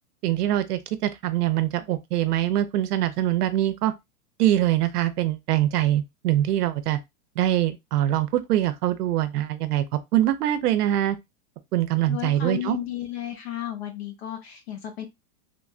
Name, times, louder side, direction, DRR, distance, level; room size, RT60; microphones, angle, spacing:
voice 1, 0.2-3.9 4.4-7.0 7.4-11.2 11.7-12.8, right 13 dB, 85° right, 0.6 m, -23 dB
voice 2, 12.1-15.1, left 12 dB, 45° left, 0.7 m, -33 dB
3.3 x 2.2 x 2.4 m
supercardioid pair, 170°, 45 cm